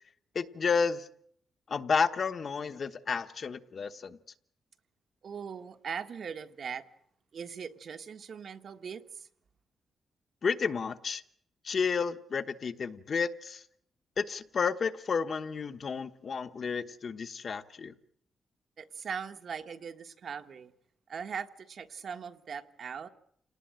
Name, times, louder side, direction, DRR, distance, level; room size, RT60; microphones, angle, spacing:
voice 1, 0.3-1.1 1.7-4.2 10.4-11.2 11.6-13.6 14.2-17.9, left 5 dB, 45° left, 1.1 m, -31 dB
voice 2, 5.2-6.8 7.3-9.3 18.8-20.7 21.1-23.1, right 6 dB, 55° right, 1.4 m, -40 dB
28.5 x 19.0 x 7.8 m
wide cardioid pair, 135°, 0 cm